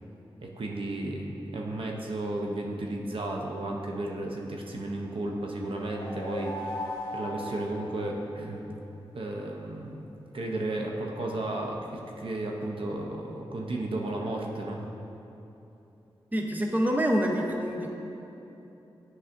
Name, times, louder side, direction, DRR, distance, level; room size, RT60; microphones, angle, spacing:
voice 1, 0.4-6.7 7.1-8.7 9.1-10.1 10.3-14.8, right 1 dB, 65° right, 0 dB, 0.6 m, -33 dB
sound 1, 5.6-8.5, left 1 dB, 45° left, 1.3 m, -37 dB
voice 2, 16.3-17.9, equal, 15° right, 1 dB, 0.6 m, -26 dB
8.3 x 5.5 x 2.5 m, 3.0 s
cardioid pair, 65°, 10 cm